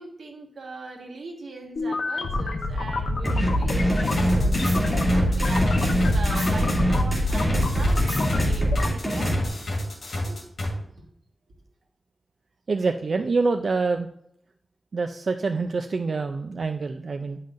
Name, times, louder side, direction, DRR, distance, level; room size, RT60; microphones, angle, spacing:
voice 1, 0.0-9.3 10.3-10.4 11.0-11.1, right 3 dB, 90° right, 0 dB, 1.6 m, -40 dB
sound 1, 1.8-8.9, left 1 dB, 90° left, 0.8 m, -26 dB
sound 2, 3.2-9.4, equal, ahead, 2.5 m, -24 dB
sound 3, 4.0-10.7, left 1 dB, 65° left, 2.5 m, -31 dB
voice 2, 12.7-14.1 14.9-17.4, right 4 dB, 60° right, 6 dB, 0.4 m, -26 dB
10.5 x 5.6 x 2.5 m, 0.74 s
wide cardioid pair, 110°, 0 cm